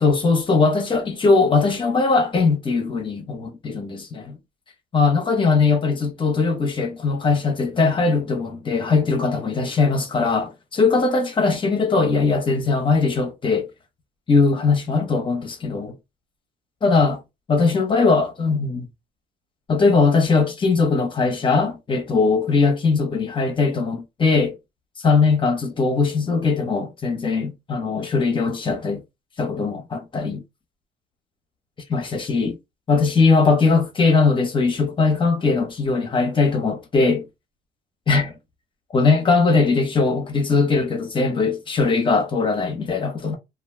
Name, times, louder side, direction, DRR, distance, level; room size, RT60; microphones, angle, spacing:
voice 1, 0.0-4.4 4.9-13.7 14.3-15.9 16.8-17.2 17.5-18.9 19.7-24.5 25.0-29.0 29.4-30.4 31.9-32.6 32.9-37.2 38.1-38.3 38.9-43.4, left 4 dB, 30° left, 0.8 m, -20 dB
2.4 x 2.2 x 3.3 m
cardioid pair, 110°, 17 cm